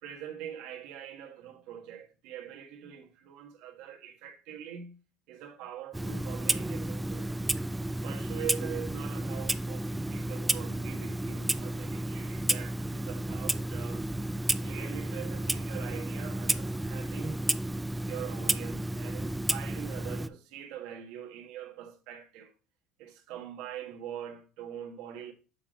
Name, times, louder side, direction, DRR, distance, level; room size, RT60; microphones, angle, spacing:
voice 1, 0.0-5.0 5.3-7.3 8.0-14.1 14.6-17.4 18.1-22.5 23.0-25.3, right 9 dB, 70° right, 1.3 m, -43 dB
Clock, 5.9-20.3, right 1 dB, 10° right, 0.3 m, -32 dB
6.8 x 3.8 x 4.8 m
supercardioid pair, 120°, 0 cm